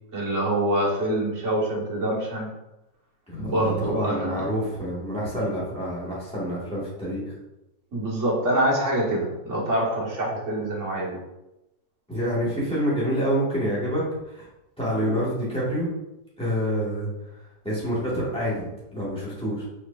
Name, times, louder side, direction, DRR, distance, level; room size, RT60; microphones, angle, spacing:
voice 1, 0.1-2.5 3.4-4.4 7.9-11.2, right 1 dB, 40° right, -4 dB, 1.5 m, -25 dB
voice 2, 3.3-7.3 12.1-14.5 14.8-15.9 16.4-19.6, equal, 5° left, -8 dB, 1.3 m, -27 dB
4.5 x 4.5 x 2.5 m, 0.92 s
omnidirectional pair, 2.2 m